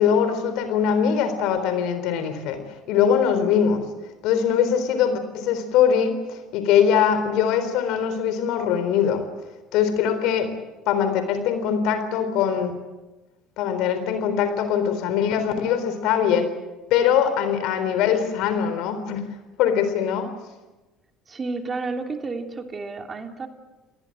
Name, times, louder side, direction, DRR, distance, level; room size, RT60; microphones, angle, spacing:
voice 1, 0.0-2.6 2.9-3.8 4.2-9.2 9.7-10.5 10.9-12.7 13.6-16.4 16.9-19.2 19.6-20.3, left 8 dB, 65° left, 9 dB, 4.0 m, -22 dB
voice 2, 21.3-23.5, right 3 dB, 30° right, 5 dB, 3.1 m, -31 dB
29.5 x 19.5 x 7.7 m, 1.1 s
hypercardioid pair, 65°, 0 cm